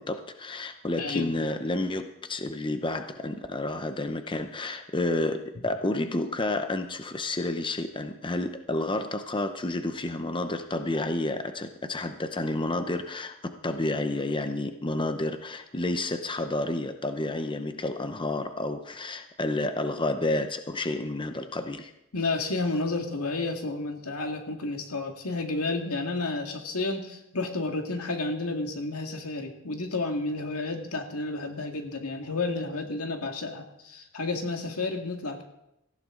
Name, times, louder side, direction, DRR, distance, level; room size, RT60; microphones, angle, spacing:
voice 1, 0.0-21.9, left 2 dB, 20° left, 8 dB, 0.8 m, -30 dB
voice 2, 1.0-1.3 22.1-35.4, left 3 dB, 85° left, 3 dB, 2.1 m, -31 dB
17.5 x 15.5 x 3.9 m, 0.84 s
head